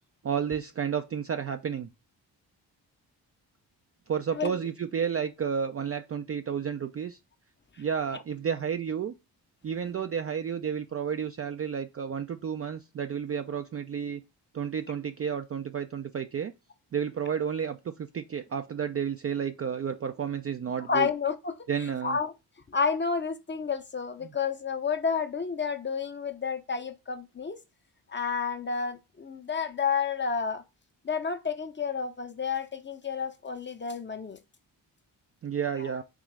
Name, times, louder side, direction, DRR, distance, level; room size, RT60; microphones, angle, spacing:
voice 1, 0.2-1.9 4.1-7.2 7.8-9.1 9.6-14.2 14.5-16.5 16.9-21.1 21.7-22.2 24.2-24.3 35.4-36.0, right 7 dB, 30° right, 0.3 m, -31 dB
voice 2, 20.9-21.5 22.0-22.3 22.7-27.6 28.1-30.6 31.0-34.4, left 6 dB, 25° left, 0.5 m, -30 dB
3.7 x 2.9 x 3.2 m
hypercardioid pair, 40°, 50 cm